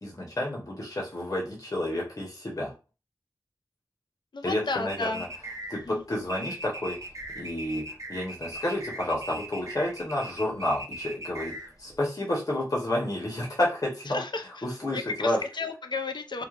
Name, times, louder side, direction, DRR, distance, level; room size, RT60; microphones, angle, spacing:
voice 1, 0.0-2.7 4.4-5.3 5.7-7.1 7.3-7.8 8.1-14.2 14.6-15.4, left 1 dB, 50° left, -3 dB, 0.9 m, -30 dB
voice 2, 4.3-5.3 5.7-6.0 14.1-14.7 14.9-16.4, left 3 dB, 70° left, 6 dB, 0.4 m, -33 dB
sound 1, 4.9-12.0, right 1 dB, 40° right, 0.6 m, -40 dB
3.2 x 2.0 x 2.4 m, 0.32 s
wide cardioid pair, 45°, 8 cm